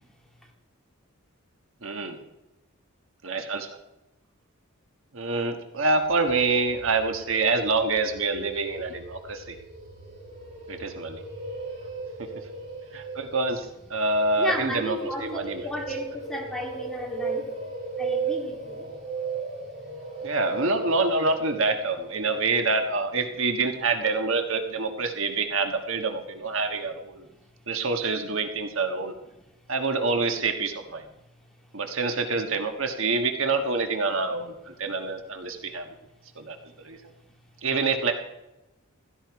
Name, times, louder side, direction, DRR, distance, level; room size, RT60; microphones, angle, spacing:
voice 1, 1.8-2.2 3.2-3.7 5.1-9.6 10.7-11.2 12.9-15.6 20.2-27.3 27.7-29.1 29.7-31.0 31.7-35.9 36.4-37.0 37.6-38.1, right 3 dB, 65° right, 5 dB, 1.4 m, -26 dB
sound 1, 6.0-22.9, right 4 dB, 35° right, 7.4 m, -37 dB
voice 2, 14.4-17.5 18.0-18.9 27.2-27.3, left 1 dB, ahead, -1 dB, 2.9 m, -33 dB
16.0 x 14.5 x 4.7 m, 0.95 s
head